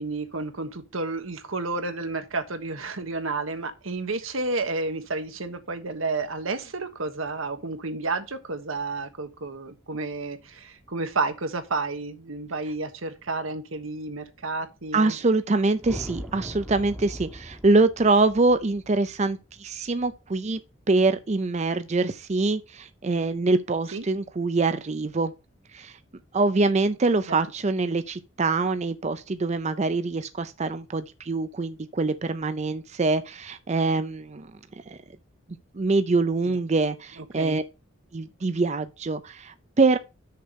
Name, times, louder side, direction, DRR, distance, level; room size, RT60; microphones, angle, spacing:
voice 1, 0.0-15.2 23.9-24.0 27.3-27.4 36.4-36.6 37.2-37.6, right 3 dB, 90° right, 1.3 m, -31 dB
voice 2, 14.9-20.6 20.9-25.3 25.7-26.0 26.3-34.5 34.9-35.0 35.7-37.6 38.1-40.0, right 3 dB, 35° right, 0.5 m, -24 dB
sound 1, 15.8-20.2, equal, ahead, 0.9 m, -40 dB
6.6 x 5.3 x 6.3 m
head